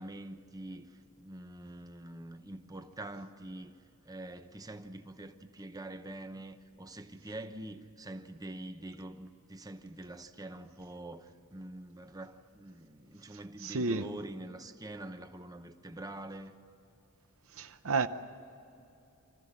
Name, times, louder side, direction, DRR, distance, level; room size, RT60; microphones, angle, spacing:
voice 1, 0.0-3.7 4.0-16.5, right 1 dB, 15° right, 0.9 m, -45 dB
voice 2, 13.6-14.1 17.5-18.1, right 3 dB, 65° right, 0.8 m, -31 dB
25.5 x 14.5 x 9.9 m
head